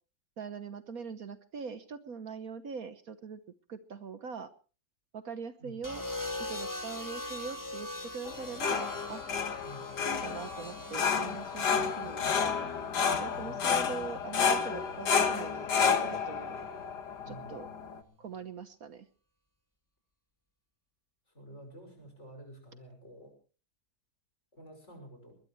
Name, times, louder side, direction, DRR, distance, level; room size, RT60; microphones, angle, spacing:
voice 1, 0.4-3.4 3.7-4.5 5.1-6.1 6.4-9.2 10.0-12.7 13.2-16.5 17.3-17.7 18.2-19.1, right 5 dB, 60° right, 10 dB, 1.5 m, -42 dB
sound 1, 5.8-14.0 15.2-15.6, left 1 dB, 10° left, 1.3 m, -42 dB
sound 2, 8.2-18.0, left 6 dB, 80° left, 2.0 m, -31 dB
voice 2, 9.6-10.2 13.4-13.7 17.2-18.3 21.3-23.3 24.5-25.4, right 1 dB, 40° left, 4 dB, 6.8 m, -51 dB
21.5 x 21.0 x 3.2 m, 0.38 s
omnidirectional pair, 1.8 m